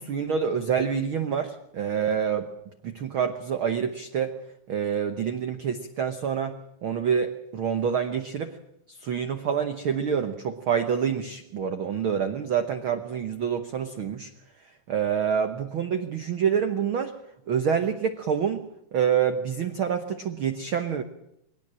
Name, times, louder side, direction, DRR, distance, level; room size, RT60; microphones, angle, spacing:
voice 1, 0.0-2.5 2.8-4.4 4.7-6.6 6.8-8.6 8.9-14.3 14.9-17.1 17.5-18.6 18.9-21.0, right 7 dB, 90° right, 8 dB, 1.1 m, -27 dB
21.5 x 18.5 x 7.5 m, 0.80 s
omnidirectional pair, 4.0 m